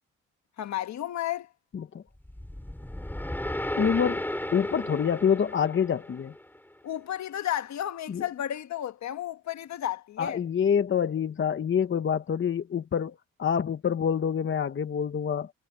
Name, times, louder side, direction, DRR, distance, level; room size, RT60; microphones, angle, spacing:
voice 1, 0.6-1.5 6.8-10.4, left 12 dB, 65° left, 1.5 m, -32 dB
sound 1, 2.2-6.6, left 1 dB, 5° left, 6.1 m, -34 dB
voice 2, 3.8-4.3 4.5-6.3 8.1-8.2 10.2-15.5, left 7 dB, 40° left, 1.3 m, -26 dB
cardioid pair, 90°, 30 cm